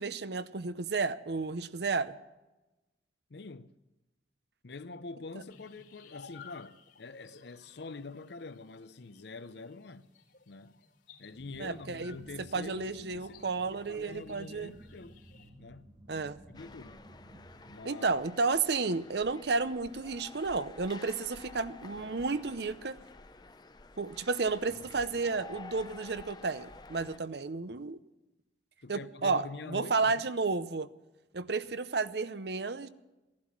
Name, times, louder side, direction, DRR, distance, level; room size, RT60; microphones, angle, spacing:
voice 1, 0.0-2.2 11.6-12.2 12.5-14.7 16.1-16.4 17.8-23.0 24.0-28.0 28.9-30.9 31.3-32.9, right 4 dB, 65° right, 0.7 m, -32 dB
voice 2, 3.3-3.8 4.6-10.1 10.5-10.8 11.2-15.2 15.5-17.0 17.7-18.2 28.8-30.3, left 3 dB, 70° left, 0.7 m, -46 dB
sound 1, 5.5-15.5, left 5 dB, 90° left, 3.2 m, -57 dB
sound 2, 11.3-17.8, right 1 dB, 30° right, 1.1 m, -55 dB
sound 3, 16.5-27.2, left 3 dB, 20° left, 0.5 m, -51 dB
16.0 x 12.0 x 7.4 m
head